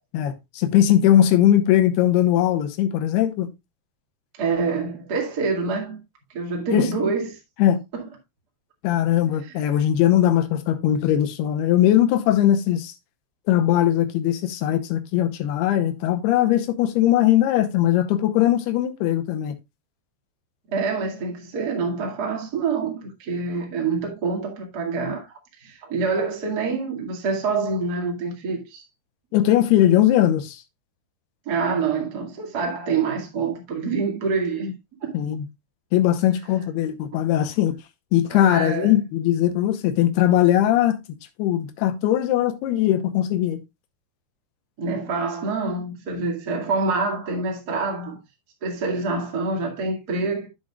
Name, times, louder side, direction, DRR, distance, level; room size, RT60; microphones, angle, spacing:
voice 1, 0.1-3.5 6.7-6.9 7.6-7.8 8.8-12.9 13.5-19.5 29.3-30.6 35.1-35.5 35.9-37.8 38.1-41.0 41.4-43.6, left 12 dB, 80° left, 2.6 m, -20 dB
voice 2, 4.4-6.0 6.3-7.4 7.9-8.1 9.4-9.6 20.7-28.8 31.4-34.7 35.0-35.2 38.3-38.9 44.8-48.2 48.6-50.5, right 4 dB, 40° right, 1.5 m, -26 dB
10.0 x 7.6 x 2.3 m
omnidirectional pair, 5.2 m